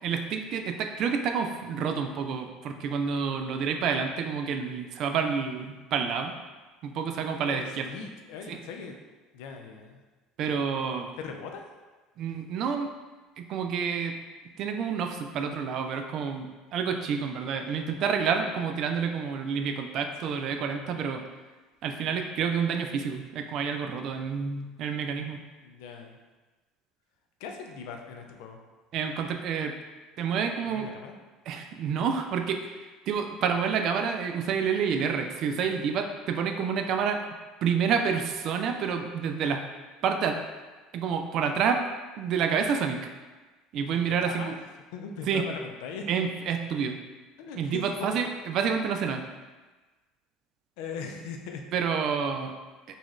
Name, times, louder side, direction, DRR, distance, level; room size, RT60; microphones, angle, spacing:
voice 1, 0.0-6.4 6.8-7.8 8.5-8.6 10.4-11.1 12.2-12.9 13.4-14.2 14.6-21.2 21.8-25.4 28.9-29.7 30.2-30.9 31.5-37.2 37.6-39.6 40.0-40.4 40.9-41.8 42.2-43.0 43.7-44.5 45.3-45.4 46.1-47.0 47.6-49.2 51.7-52.5, right 6 dB, 60° right, 5 dB, 0.4 m, -29 dB
voice 2, 7.5-9.0 9.3-10.0 11.2-11.6 20.2-20.6 25.6-26.2 27.4-28.6 30.7-31.2 44.2-46.1 47.4-48.2 50.8-51.6, left 5 dB, 75° left, 3 dB, 0.4 m, -40 dB
4.0 x 2.4 x 3.1 m, 1.3 s
hypercardioid pair, 75°, 0 cm